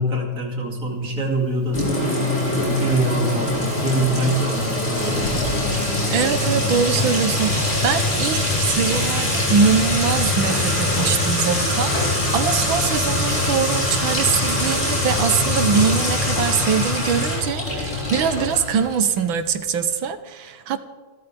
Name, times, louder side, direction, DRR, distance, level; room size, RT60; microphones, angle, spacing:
voice 1, 0.0-1.8 2.5-5.3, right 2 dB, 45° right, -1 dB, 3.3 m, -24 dB
Sink (filling or washing) / Trickle dribble / Fill (with liquid), 1.7-19.2, left 1 dB, 35° left, 5.6 m, -23 dB
sound 1, 4.9-18.6, left 4 dB, 70° left, 4.9 m, -31 dB
voice 2, 6.1-20.8, right 6 dB, 85° right, 10 dB, 1.8 m, -23 dB
28.5 x 13.0 x 3.5 m, 1.4 s
omnidirectional pair, 2.1 m